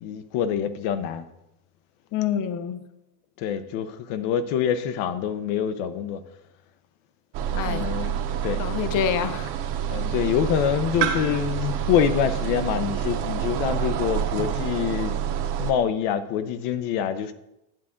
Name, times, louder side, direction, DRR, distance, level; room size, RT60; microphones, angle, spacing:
voice 1, 0.0-1.3 3.4-6.2 7.5-8.7 9.9-15.2 15.6-17.3, left 8 dB, 90° left, 0.9 m, -26 dB
voice 2, 2.1-2.9 7.5-7.9 8.6-9.5, left 8 dB, 40° left, 0.6 m, -26 dB
sound 1, 7.3-15.7, right 9 dB, 55° right, 1.0 m, -28 dB
10.5 x 8.4 x 3.7 m
cardioid pair, 170°, 49 cm